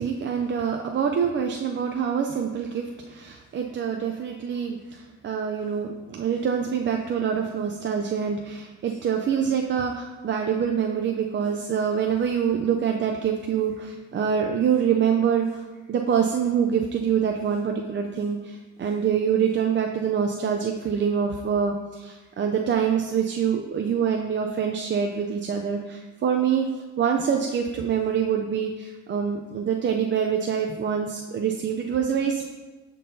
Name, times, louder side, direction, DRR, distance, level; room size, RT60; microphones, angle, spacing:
voice 1, 0.0-32.4, right 7 dB, 40° right, 2 dB, 0.4 m, -25 dB
10.5 x 3.8 x 2.7 m, 1.3 s
cardioid pair, 90°, 30 cm